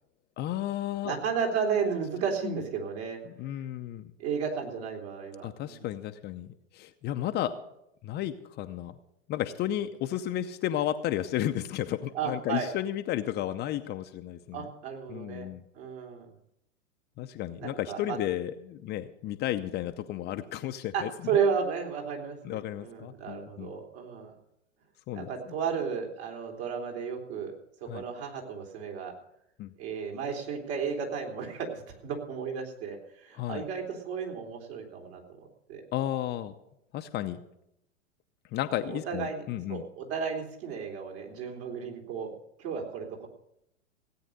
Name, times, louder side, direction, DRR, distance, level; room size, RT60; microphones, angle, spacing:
voice 1, 0.4-1.1 2.4-2.6 3.3-4.1 5.4-7.5 8.0-8.9 9.3-14.7 15.1-15.6 17.2-21.1 22.4-23.7 25.1-25.5 27.9-28.0 29.6-29.7 33.3-33.7 35.9-36.5 36.9-37.4 38.5-39.8, left 12 dB, 25° left, 8 dB, 0.7 m, -33 dB
voice 2, 1.0-3.2 4.2-5.9 12.1-12.7 14.5-15.5 15.7-16.3 17.6-18.2 20.9-24.3 25.1-27.5 27.9-29.1 29.8-31.7 32.0-35.2 35.7-36.1 38.9-39.4 39.7-42.3 42.6-43.3, right 6 dB, 55° right, 1 dB, 3.8 m, -33 dB
17.0 x 8.8 x 6.6 m, 0.79 s
hypercardioid pair, 110°, 38 cm